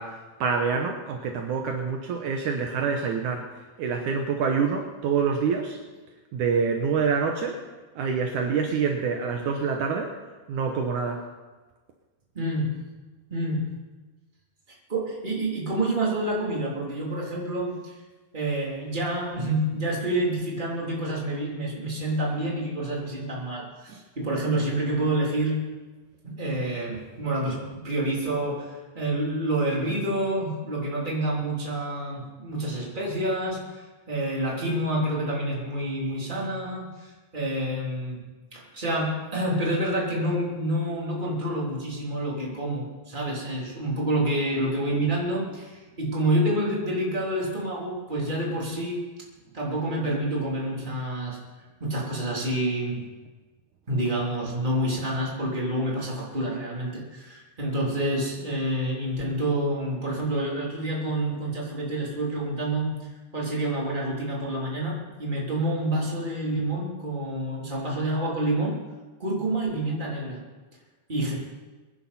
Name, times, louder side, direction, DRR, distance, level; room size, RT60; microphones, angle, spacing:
voice 1, 0.0-5.8 6.3-7.6 8.0-10.1 10.5-11.2 23.9-24.0, right 5 dB, 70° right, 3 dB, 2.4 m, -26 dB
voice 2, 12.3-12.7 13.3-13.7 14.7-17.9 18.3-23.9 24.1-25.6 26.2-33.6 34.1-38.2 38.5-49.0 49.5-51.4 51.8-53.0 53.9-63.0 63.3-64.9 65.2-68.8 69.2-70.4 71.1-71.4, right 1 dB, 15° right, -4 dB, 3.2 m, -28 dB
23.5 x 10.5 x 4.3 m, 1.3 s
omnidirectional pair, 3.8 m